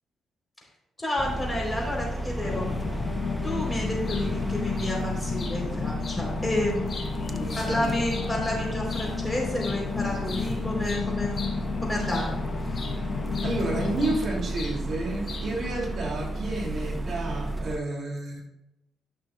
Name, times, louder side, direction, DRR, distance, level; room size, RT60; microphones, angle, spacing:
voice 1, 1.0-2.7 3.4-6.9 7.5-11.5 11.8-12.4, left 1 dB, 15° left, -2 dB, 3.2 m, -30 dB
sound 1, 1.2-17.8, right 1 dB, 15° right, 0.6 m, -33 dB
sound 2, 2.4-14.2, left 7 dB, 60° left, 0.5 m, -32 dB
sound 3, 4.1-4.2 4.8-4.9 5.4-5.6 6.0-6.2 6.7-8.3 8.8-9.1 9.6-9.8 10.0-12.4 12.7-12.9 13.3-14.2 14.5-14.8 15.2-15.7, left 4 dB, 45° left, 2.2 m, -41 dB
voice 2, 7.2-7.9 13.4-18.4, right 2 dB, 55° right, -1 dB, 2.3 m, -31 dB
13.5 x 6.1 x 2.2 m, 0.92 s
cardioid pair, 90°, 0 cm